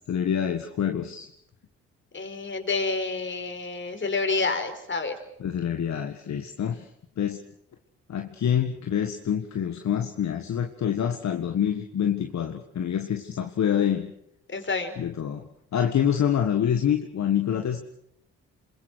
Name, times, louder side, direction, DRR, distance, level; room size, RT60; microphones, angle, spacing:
voice 1, 0.1-1.3 5.4-6.8 7.2-7.4 8.1-14.1 15.0-15.4 15.7-17.8, left 9 dB, 60° left, 5 dB, 1.8 m, -26 dB
voice 2, 2.1-5.1 14.5-14.9, left 3 dB, 35° left, 6 dB, 5.0 m, -28 dB
27.0 x 22.0 x 6.4 m, 0.79 s
hypercardioid pair, 50°, 32 cm